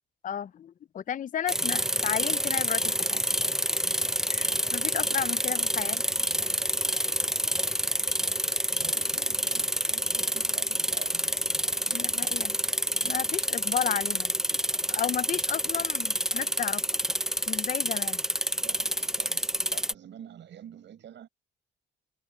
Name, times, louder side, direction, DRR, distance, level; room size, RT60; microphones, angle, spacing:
voice 1, 0.2-3.2 4.3-6.0 11.9-12.6 13.0-14.3 14.9-16.8 17.5-18.2, left 9 dB, 40° left, 0.5 m, -33 dB
sound 1, 1.5-19.9, equal, ahead, 0.8 m, -28 dB
voice 2, 8.8-11.5 11.8-12.6 18.6-21.3, right 10 dB, 65° right, 5.4 m, -49 dB
cardioid pair, 90°, 20 cm